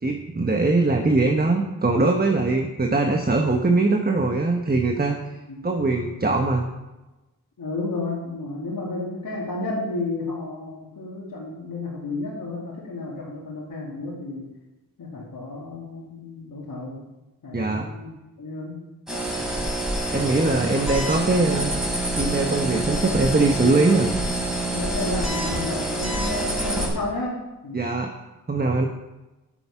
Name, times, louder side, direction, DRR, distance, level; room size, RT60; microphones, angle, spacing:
voice 1, 0.0-5.2 5.6-6.7 17.5-17.9 20.1-21.7 22.2-24.1 27.7-28.1 28.5-28.9, right 3 dB, 25° right, 4 dB, 1.1 m, -21 dB
voice 2, 7.6-14.4 15.0-17.0 17.4-18.1 18.4-18.7 19.4-19.7 24.7-27.3 27.6-27.8, left 2 dB, 85° left, -8 dB, 2.6 m, -32 dB
sound 1, 19.1-26.9, right 1 dB, ahead, 4.2 m, -26 dB
10.0 x 6.8 x 5.9 m, 1.0 s
cardioid pair, 45°, 34 cm